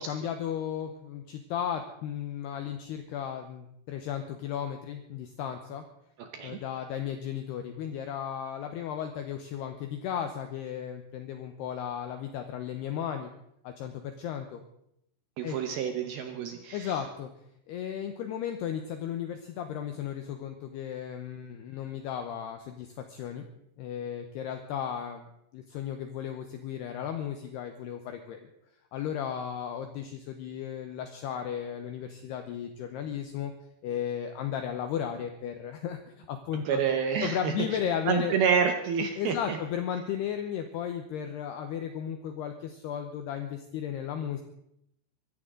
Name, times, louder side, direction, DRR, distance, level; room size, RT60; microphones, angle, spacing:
voice 1, 0.0-5.8 6.4-13.3 13.6-14.6 15.4-15.6 16.7-17.3 17.7-23.5 23.8-25.3 25.5-28.4 28.9-33.5 33.8-36.8 37.2-38.4 39.2-44.4, left 9 dB, 80° left, 6 dB, 2.5 m, -35 dB
voice 2, 6.2-6.6 15.4-16.9 36.7-37.5 38.1-39.6, right 6 dB, 75° right, 5 dB, 2.2 m, -28 dB
24.0 x 14.0 x 3.8 m, 0.78 s
omnidirectional pair, 5.8 m